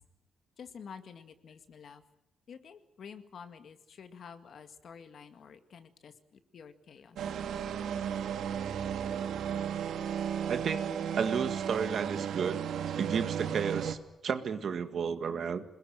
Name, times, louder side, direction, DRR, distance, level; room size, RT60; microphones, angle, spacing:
voice 1, 0.6-2.0 2.5-7.2, left 6 dB, 50° left, 9 dB, 2.0 m, -50 dB
sound 1, 7.2-13.9, right 8 dB, 80° right, 1.8 m, -34 dB
voice 2, 10.5-10.9 11.1-12.6 13.0-14.0 14.2-15.6, right 6 dB, 50° right, 10 dB, 1.8 m, -32 dB
27.0 x 21.0 x 9.2 m, 0.84 s
wide cardioid pair, 165°, 0 cm